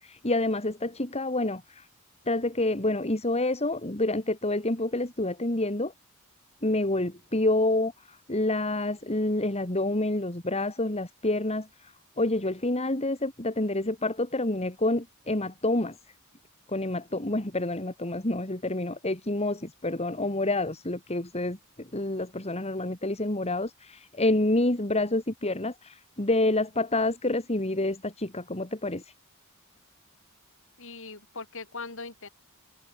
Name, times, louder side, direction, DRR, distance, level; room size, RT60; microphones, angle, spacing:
voice 1, 0.0-1.9 2.3-5.9 6.6-16.0 16.7-29.0, left 2 dB, 30° left, 2.8 m, -28 dB
voice 2, 30.8-32.3, left 4 dB, 65° left, 6.9 m, -40 dB
head